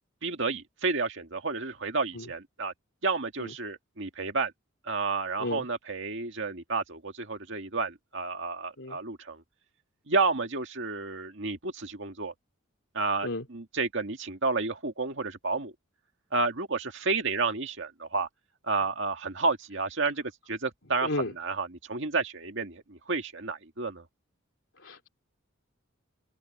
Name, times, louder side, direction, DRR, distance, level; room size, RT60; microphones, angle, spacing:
voice 1, 0.2-2.7 3.0-4.5 4.8-9.4 10.1-12.3 12.9-15.7 16.3-18.3 18.7-24.0, right 3 dB, 60° right, 2.1 m, -31 dB
voice 2, 21.0-21.3 24.8-25.1, left 2 dB, 65° left, 3.1 m, -33 dB
open air
head